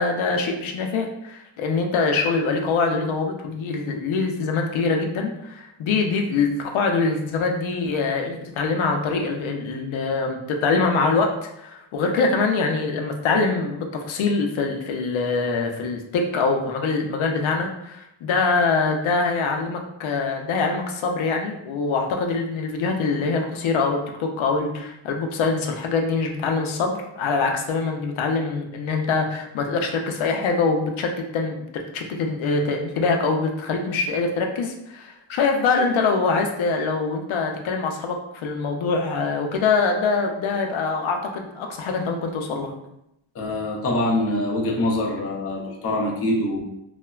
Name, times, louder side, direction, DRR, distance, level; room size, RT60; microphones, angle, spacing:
voice 1, 0.0-11.3 11.6-42.7, left 4 dB, 80° left, 3 dB, 0.5 m, -24 dB
voice 2, 43.3-46.6, left 1 dB, 30° left, -1 dB, 0.4 m, -24 dB
3.2 x 2.1 x 2.3 m, 0.83 s
wide cardioid pair, 155°, 47 cm